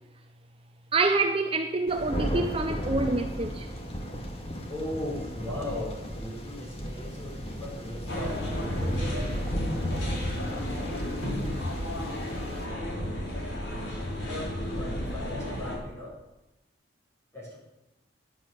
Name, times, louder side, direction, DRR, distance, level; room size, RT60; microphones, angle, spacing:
voice 1, 0.9-3.7, right 3 dB, 30° right, 0.8 m, -26 dB
Thunder, 1.9-12.6, equal, 30° left, 2.0 m, -35 dB
voice 2, 4.7-9.5 14.3-16.2 17.3-17.6, left 1 dB, 15° left, 5.5 m, -38 dB
sound 1, 8.1-15.8, left 1 dB, 80° left, 5.1 m, -32 dB
11.0 x 11.0 x 9.3 m
head